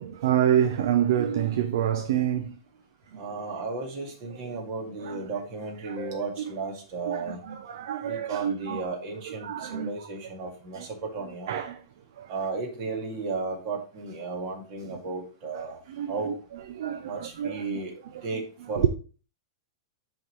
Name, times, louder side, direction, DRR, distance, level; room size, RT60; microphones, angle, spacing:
voice 1, 0.0-2.6 4.4-4.5 5.0-5.3 5.8-6.0 6.4-6.5 7.1-8.9 9.2-10.0 10.7-10.9 11.5-11.8 12.2-12.3 14.8-14.9 15.9-17.7 18.1-18.4 18.8-18.9, right 10 dB, 70° right, 0.6 m, -28 dB
voice 2, 3.2-7.4 8.0-11.5 12.3-15.8 16.1-16.4 17.0-17.9 18.2-18.9, right 3 dB, 40° right, 2.2 m, -34 dB
10.0 x 3.8 x 3.2 m
supercardioid pair, 150°, 2 cm